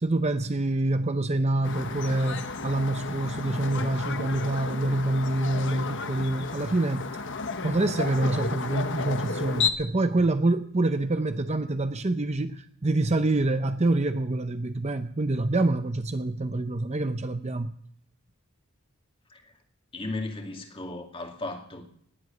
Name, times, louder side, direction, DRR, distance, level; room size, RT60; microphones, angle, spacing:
voice 1, 0.0-7.1 7.6-17.7, right 2 dB, 30° right, 9 dB, 0.7 m, -26 dB
sound 1, 1.6-9.7, left 5 dB, 55° left, 1.1 m, -32 dB
voice 2, 19.9-21.9, left 2 dB, 25° left, 4 dB, 2.3 m, -36 dB
19.0 x 8.1 x 9.3 m, 0.64 s
head